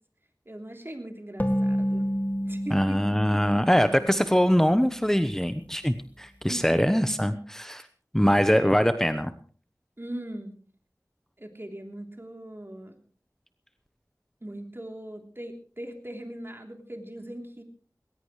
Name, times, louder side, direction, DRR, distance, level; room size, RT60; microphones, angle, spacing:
voice 1, 0.4-2.1 2.4-3.0 6.5-6.7 10.0-10.6 11.4-13.0 14.4-17.6, right 1 dB, 35° right, 3 dB, 3.4 m, -40 dB
sound 1, 1.4-4.9, equal, 25° left, 2.3 m, -29 dB
voice 2, 2.7-7.9 8.1-9.3, equal, 5° left, 10 dB, 0.9 m, -23 dB
19.5 x 18.0 x 3.2 m, 0.42 s
wide cardioid pair, 50°, 7 cm